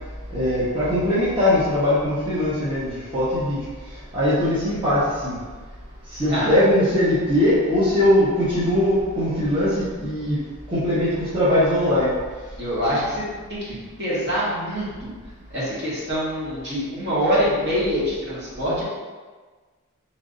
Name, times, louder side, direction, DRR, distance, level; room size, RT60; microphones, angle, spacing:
voice 1, 0.3-3.6 4.1-5.4 6.1-10.4 10.7-12.1, left 1 dB, 25° right, -12 dB, 0.9 m, -21 dB
voice 2, 6.3-6.6 12.6-15.1 15.5-18.8, equal, 50° right, -9 dB, 1.4 m, -25 dB
3.1 x 2.6 x 3.8 m, 1.4 s
head